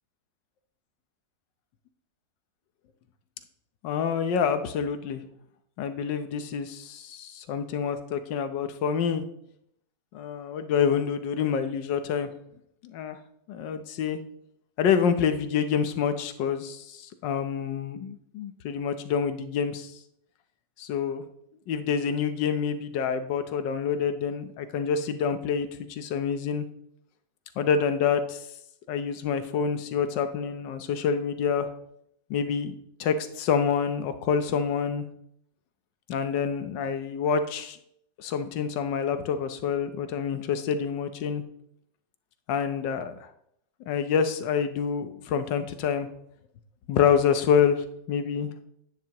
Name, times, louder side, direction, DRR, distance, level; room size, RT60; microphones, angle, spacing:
voice 1, 3.8-5.2 5.8-9.2 10.1-12.3 12.8-13.2 13.5-14.2 14.8-19.9 20.8-21.2 21.7-26.7 27.6-28.4 28.9-31.7 32.3-32.7 33.0-35.1 36.1-37.8 38.2-41.4 42.5-43.3 43.9-46.1 46.9-48.7, left 7 dB, 80° left, 10 dB, 1.5 m, -27 dB
10.5 x 9.5 x 2.9 m, 0.74 s
omnidirectional pair, 1.9 m